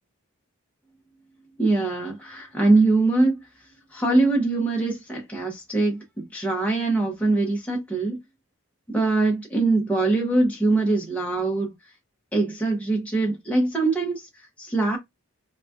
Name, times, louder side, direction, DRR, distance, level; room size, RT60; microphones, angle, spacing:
voice 1, 1.6-3.4 3.9-8.2 8.9-11.7 12.3-14.3 14.6-15.0, right 2 dB, 5° left, 0.7 m, -22 dB
3.8 x 2.3 x 2.3 m
head